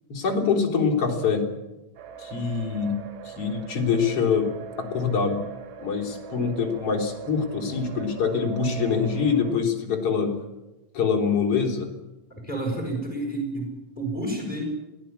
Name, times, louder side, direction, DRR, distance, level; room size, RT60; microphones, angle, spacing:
voice 1, 0.1-1.5 2.2-3.0 3.2-4.5 4.8-5.4 5.8-10.4 10.9-11.9, left 5 dB, 30° left, 1 dB, 4.1 m, -24 dB
sound 1, 2.0-9.5, right 7 dB, 65° right, 3.7 m, -41 dB
voice 2, 12.4-14.6, right 2 dB, 10° left, 2 dB, 5.9 m, -30 dB
23.0 x 17.5 x 8.6 m, 1.0 s
omnidirectional pair, 5.9 m